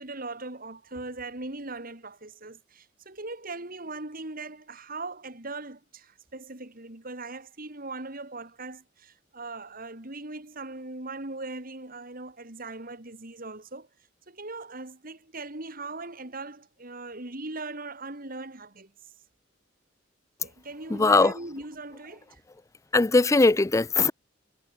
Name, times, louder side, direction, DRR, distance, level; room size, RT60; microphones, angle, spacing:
voice 1, 0.0-13.9 14.3-18.9 20.4-22.4, right 2 dB, 45° right, 3.4 m, -39 dB
voice 2, 20.9-21.4 22.9-24.1, left 3 dB, 15° left, 0.4 m, -20 dB
head